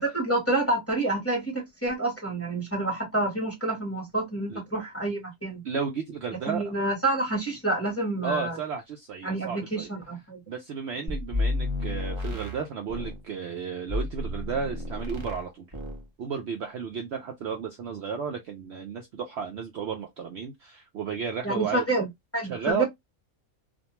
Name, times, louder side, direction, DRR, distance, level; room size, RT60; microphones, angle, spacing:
voice 1, 0.0-5.6 6.5-8.6 9.2-10.4 11.0-11.1 21.4-22.8, right 2 dB, 10° left, 1.0 m, -28 dB
voice 2, 5.6-6.8 8.2-9.9 10.5-15.7 16.2-21.9 22.5-22.8, right 6 dB, 65° right, 0.7 m, -33 dB
sound 1, 11.1-13.2 13.9-15.5 15.7-16.1, left 2 dB, 30° right, 0.5 m, -31 dB
2.5 x 2.2 x 2.9 m
omnidirectional pair, 1.5 m